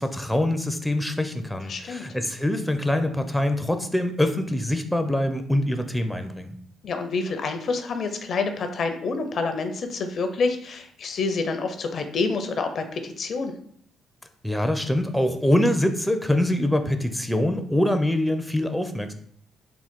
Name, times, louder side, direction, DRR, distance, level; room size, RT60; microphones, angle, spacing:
voice 1, 0.0-6.6 14.4-19.1, left 1 dB, 5° left, 7 dB, 0.5 m, -24 dB
voice 2, 1.7-2.1 6.8-13.5, left 4 dB, 60° left, 7 dB, 0.4 m, -27 dB
3.7 x 2.4 x 3.5 m, 0.64 s
hypercardioid pair, 55°, 0 cm